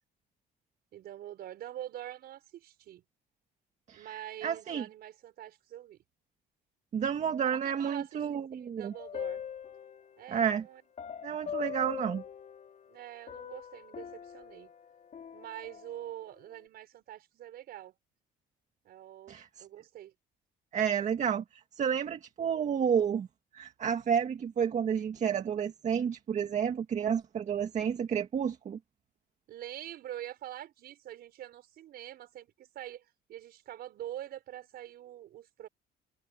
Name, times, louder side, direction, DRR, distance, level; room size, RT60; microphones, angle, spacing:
voice 1, 0.9-3.0 3.9-6.0 7.5-9.4 10.2-10.8 12.9-14.7 15.3-17.9 18.8-20.1 29.5-35.7, right 12 dB, 65° right, 5.4 m, -45 dB
voice 2, 4.4-4.9 6.9-8.9 10.3-10.6 11.2-12.2 19.3-19.5 20.7-21.4 21.8-23.3 23.5-28.8, right 8 dB, 45° right, 2.0 m, -30 dB
sound 1, 8.9-10.3 11.0-13.0 13.3-16.2, left 8 dB, 45° left, 5.2 m, -42 dB
cardioid pair, 110°, 17 cm